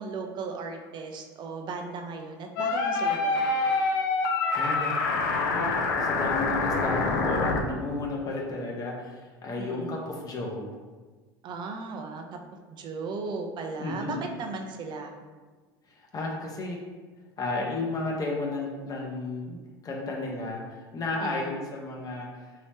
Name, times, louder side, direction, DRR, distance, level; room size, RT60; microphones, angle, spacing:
voice 1, 0.0-3.4 9.6-9.9 11.4-12.2 12.8-15.1 21.2-21.5, right 4 dB, 45° right, 4 dB, 0.5 m, -36 dB
sound 1, 2.6-7.6, left 3 dB, 70° left, 0.4 m, -26 dB
voice 2, 4.5-10.8 13.8-14.2 16.0-16.8 17.4-20.6 20.9-22.3, left 2 dB, 35° left, -1 dB, 0.7 m, -33 dB
3.0 x 2.8 x 3.2 m, 1.4 s
hypercardioid pair, 75°, 11 cm